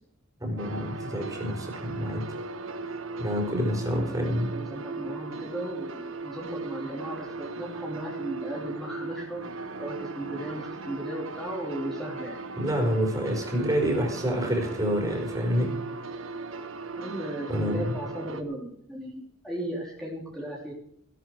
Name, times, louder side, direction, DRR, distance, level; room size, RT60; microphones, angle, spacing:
voice 1, 0.4-2.2 3.2-4.5 12.6-15.7 17.5-18.0, equal, 15° right, 1 dB, 4.7 m, -28 dB
sound 1, 0.6-18.4, right 3 dB, 70° right, 1.3 m, -37 dB
voice 2, 3.9-9.4 9.8-12.4 17.0-20.7, right 1 dB, ahead, -4 dB, 3.4 m, -36 dB
16.5 x 12.5 x 4.8 m, 0.68 s
head